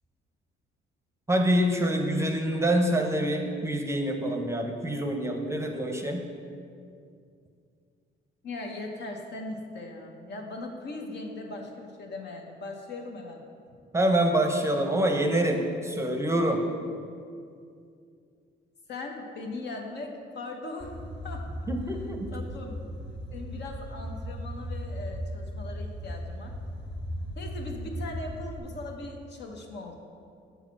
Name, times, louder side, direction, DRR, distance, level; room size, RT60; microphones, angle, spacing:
voice 1, 1.3-6.2 13.9-16.6 21.7-22.3, right 1 dB, 15° right, 3 dB, 0.7 m, -26 dB
voice 2, 8.4-13.4 18.9-21.5 22.3-22.9 23.3-26.5 27.4-29.9, left 2 dB, 60° left, 2 dB, 1.0 m, -39 dB
sound 1, 20.8-28.6, equal, 25° left, 1.9 m, -37 dB
7.0 x 4.1 x 6.0 m, 2.4 s
cardioid pair, 90°, 20 cm